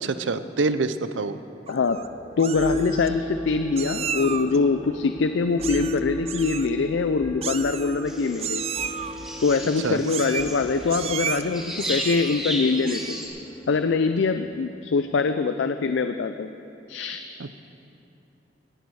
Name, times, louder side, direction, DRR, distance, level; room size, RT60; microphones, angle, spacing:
voice 1, 0.0-1.4 9.8-10.0 17.4-17.5, right 3 dB, 90° right, 12 dB, 0.6 m, -26 dB
voice 2, 1.7-2.0 2.4-8.7 9.4-13.2 13.7-16.5 16.9-17.2, left 4 dB, 75° left, 9 dB, 0.4 m, -24 dB
Meow, 1.7-2.1 2.4-3.1 3.8-4.6 5.6-6.0 6.2-6.7 7.4-8.1 8.4-9.1 10.1-10.6 10.9-11.4 11.8-12.4 12.8-13.2, right 8 dB, 35° right, 0.4 m, -33 dB
sound 1, 1.8-14.4, left 2 dB, 20° left, 1.3 m, -35 dB
sound 2, 8.1-13.3, equal, 5° right, 2.2 m, -34 dB
18.0 x 10.5 x 4.8 m, 2.9 s
head